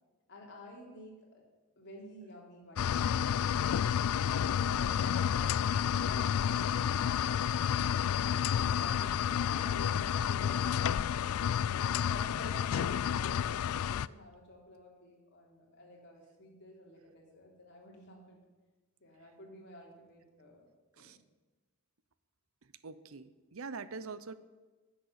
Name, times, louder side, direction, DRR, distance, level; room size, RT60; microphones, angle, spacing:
voice 1, 0.3-1.4 1.8-7.8 8.4-11.1 11.7-18.4 19.0-20.6 20.9-21.2, left 1 dB, 50° left, -2 dB, 3.7 m, -52 dB
sound 1, 2.8-14.1, left 8 dB, 70° left, 0.3 m, -30 dB
sound 2, 6.3-13.7, equal, ahead, 3.7 m, -60 dB
voice 2, 22.8-24.3, right 4 dB, 65° right, 14 dB, 0.7 m, -44 dB
10.5 x 7.6 x 9.7 m, 1.2 s
head